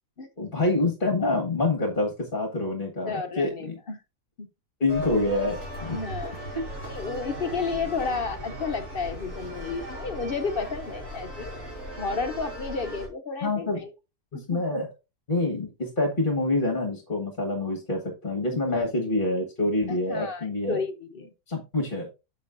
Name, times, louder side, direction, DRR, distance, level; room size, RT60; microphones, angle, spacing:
voice 1, 0.4-3.7 4.8-6.0 6.5-6.6 13.4-13.8 14.3-14.9 15.3-20.8 21.5-22.1, left 2 dB, 30° left, 1.6 m, -26 dB
voice 2, 3.0-4.0 4.4-4.5 5.9-6.4 6.9-11.5 11.9-13.9 14.3-14.8 18.7-18.9 19.9-21.3, left 4 dB, 50° left, 0.7 m, -32 dB
sound 1, 4.9-13.1, equal, 50° right, 4.6 m, -37 dB
10.5 x 6.7 x 2.6 m
omnidirectional pair, 1.7 m